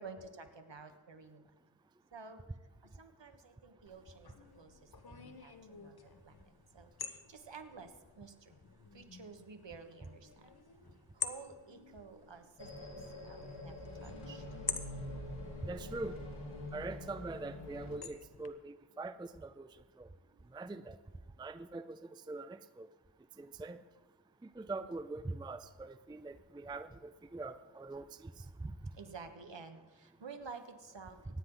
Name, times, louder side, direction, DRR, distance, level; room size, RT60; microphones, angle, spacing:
voice 1, 0.0-1.4 2.1-2.4 3.0-4.7 5.1-5.9 6.2-6.3 6.7-6.9 7.3-7.9 8.2-8.5 8.9-10.9 11.1-12.9 13.2-14.4 28.9-31.2, right 4 dB, 60° right, 7 dB, 1.5 m, -51 dB
sound 1, 3.9-18.5, left 5 dB, 50° left, 1.1 m, -48 dB
sound 2, 12.6-18.0, left 1 dB, 75° left, 3.7 m, -45 dB
voice 2, 15.7-16.2 16.7-19.7 20.5-20.9 21.4-22.0 22.3-22.9 23.6-23.8 24.6-26.9 27.3-28.0 28.6-28.7, right 3 dB, 10° right, 12 dB, 0.4 m, -43 dB
25.5 x 9.6 x 3.9 m, 1.3 s
wide cardioid pair, 60°, 49 cm